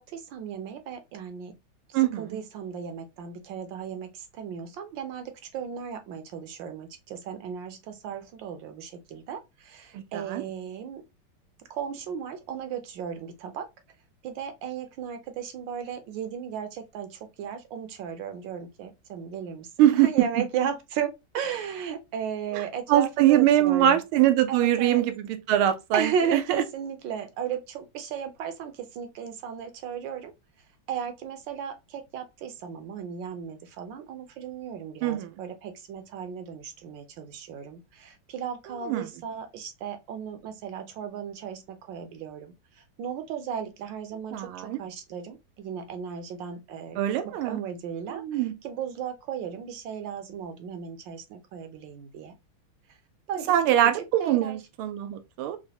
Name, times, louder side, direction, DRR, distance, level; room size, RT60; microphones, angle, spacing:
voice 1, 0.0-1.6 1.9-11.0 11.7-13.7 14.2-24.0 24.5-25.0 25.9-30.3 30.9-47.0 47.4-52.3 53.3-53.5 53.9-54.6, right 7 dB, 70° right, 1.2 m, -35 dB
voice 2, 1.9-2.4 9.9-10.4 19.8-20.1 22.5-22.6 22.9-26.4 35.0-35.3 38.9-39.1 44.3-44.8 47.0-47.6 48.1-48.5 53.5-55.6, right 12 dB, 90° right, 1.5 m, -23 dB
4.9 x 2.1 x 2.7 m
omnidirectional pair, 2.3 m